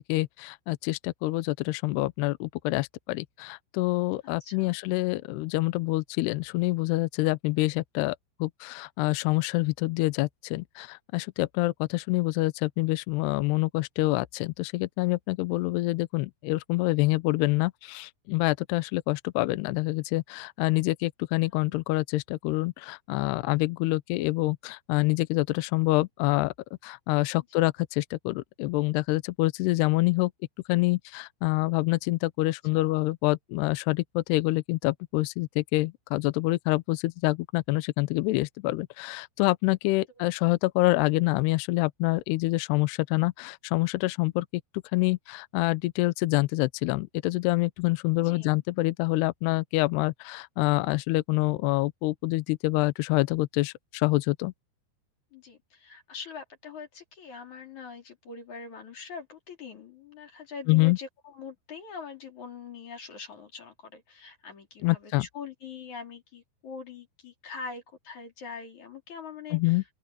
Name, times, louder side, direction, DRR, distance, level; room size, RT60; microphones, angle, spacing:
voice 1, 0.1-8.2 8.4-26.5 26.8-30.3 30.7-44.5 44.9-54.5 60.7-61.0 64.8-65.3 69.5-69.8, left 20 dB, 85° left, 2.5 m, -26 dB
voice 2, 4.4-4.7 21.5-21.6 27.4-27.5 32.7-32.9 48.2-48.6 55.3-69.9, left 5 dB, 45° left, 4.5 m, -43 dB
open air
omnidirectional pair, 5.3 m